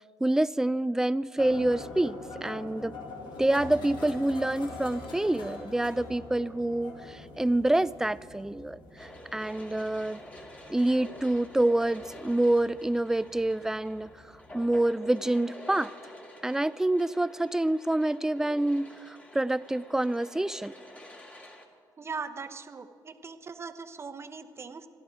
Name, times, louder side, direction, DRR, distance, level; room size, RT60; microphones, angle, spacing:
voice 1, 0.2-3.0 3.4-10.2 10.7-14.1 14.5-15.9 16.4-20.7, right 1 dB, 5° right, 18 dB, 0.4 m, -27 dB
sound 1, 1.4-14.6, left 3 dB, 70° left, 2.6 m, -45 dB
sound 2, 9.0-21.6, left 1 dB, 15° left, 2.0 m, -49 dB
voice 2, 22.0-24.9, right 5 dB, 30° right, 7 dB, 1.0 m, -40 dB
26.5 x 11.5 x 4.5 m, 2.1 s
cardioid pair, 85°, 8 cm